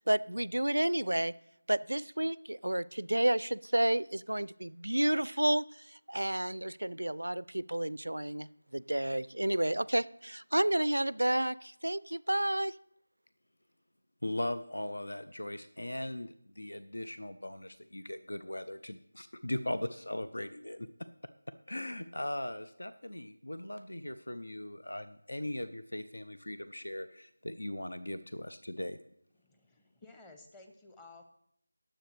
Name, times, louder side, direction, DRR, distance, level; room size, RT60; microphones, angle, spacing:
voice 1, 0.0-1.3 1.7-8.5 8.7-12.8, right 1 dB, 80° right, 20 dB, 0.4 m, -30 dB
voice 2, 14.2-20.9 21.7-29.0, left 1 dB, 75° left, 12 dB, 0.6 m, -39 dB
voice 3, 29.4-31.2, left 3 dB, 10° left, 6 dB, 0.8 m, -55 dB
20.0 x 7.6 x 3.3 m, 0.72 s
figure-of-eight pair, 165°, 0 cm